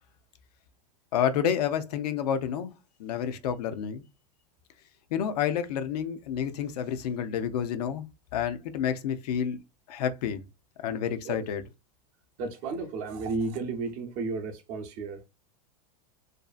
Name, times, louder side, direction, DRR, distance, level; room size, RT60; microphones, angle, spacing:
voice 1, 1.1-2.7 3.0-4.0 5.1-8.0 8.3-9.6 9.9-10.4 10.8-11.6, left 8 dB, 75° left, 0.5 m, -29 dB
voice 2, 12.4-15.2, right 3 dB, 45° right, 0.6 m, -33 dB
2.6 x 2.4 x 2.3 m
supercardioid pair, 140°, 21 cm